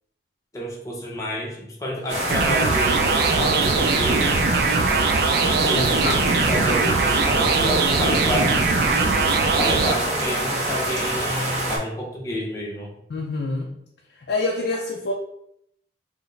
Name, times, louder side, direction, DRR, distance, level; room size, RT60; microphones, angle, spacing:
voice 1, 0.5-4.5 5.6-8.6 9.6-12.9, equal, 15° left, -3 dB, 0.6 m, -29 dB
sound 1, 2.1-11.8, right 1 dB, 35° right, 0.8 m, -26 dB
sound 2, 2.3-9.9, right 4 dB, 55° right, 0.3 m, -21 dB
voice 2, 5.7-6.2 13.1-13.7 14.3-15.1, left 2 dB, 60° left, 0 dB, 0.4 m, -26 dB
4.6 x 2.1 x 3.1 m, 0.74 s
head